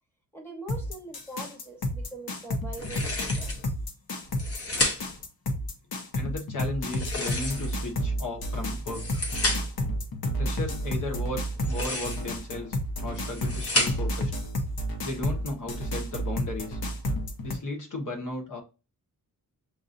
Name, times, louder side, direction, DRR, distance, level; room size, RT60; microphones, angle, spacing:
voice 1, 0.3-3.5 4.7-4.9, right 2 dB, 5° left, 1.1 m, -42 dB
sound 1, 0.7-17.6, equal, 85° left, 1.1 m, -31 dB
sound 2, 2.8-3.7 4.2-5.2 6.8-7.9 8.7-9.8 11.5-12.4 13.0-14.2, left 2 dB, 40° left, 1.0 m, -31 dB
voice 2, 6.1-9.2 10.4-14.3 15.0-16.8 17.4-18.6, left 1 dB, 60° left, 1.5 m, -35 dB
6.8 x 2.6 x 2.6 m
wide cardioid pair, 175°, 36 cm